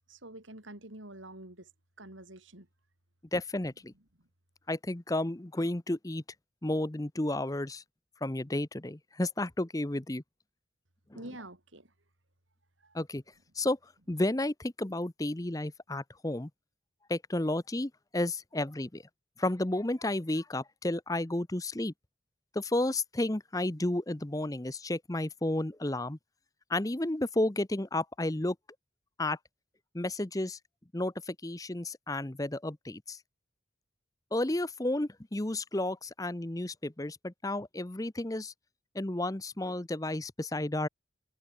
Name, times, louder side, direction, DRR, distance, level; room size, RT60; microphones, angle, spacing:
voice 1, 0.1-1.7 2.0-2.7 11.1-11.9 12.8-12.9, right 1 dB, 85° right, 6.2 m, -47 dB
voice 2, 3.3-3.9 4.7-6.2 6.6-7.8 8.2-10.2 11.1-11.2 12.9-13.2 13.5-16.5 17.1-19.0 19.4-21.9 22.5-26.2 26.7-28.6 29.2-29.4 29.9-30.6 30.9-33.2 34.3-38.5 38.9-40.9, left 1 dB, 20° left, 0.8 m, -32 dB
head